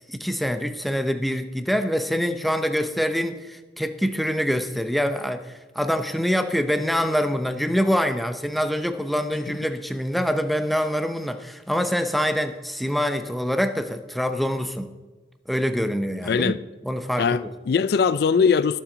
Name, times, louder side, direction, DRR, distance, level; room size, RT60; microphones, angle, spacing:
voice 1, 0.1-14.9 15.5-16.5 16.8-17.4, equal, ahead, 0.6 m, -25 dB
voice 2, 16.3-16.6 17.2-18.8, left 6 dB, 55° left, 0.3 m, -21 dB
21.0 x 7.4 x 3.9 m
head